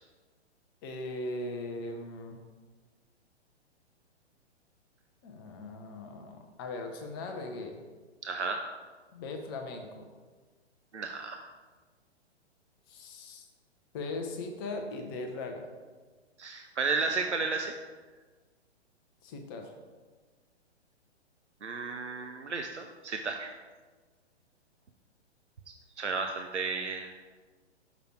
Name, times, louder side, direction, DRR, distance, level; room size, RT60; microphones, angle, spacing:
voice 1, 0.8-2.4 5.2-7.8 9.1-10.1 12.9-13.4 13.9-15.7 19.2-19.7, left 2 dB, 20° left, 4 dB, 0.5 m, -39 dB
voice 2, 8.2-8.6 10.9-11.5 16.4-17.7 21.6-23.5 26.0-27.1, right 4 dB, 90° right, 5 dB, 0.5 m, -33 dB
5.9 x 4.9 x 4.4 m, 1.4 s
figure-of-eight pair, 120°, 34 cm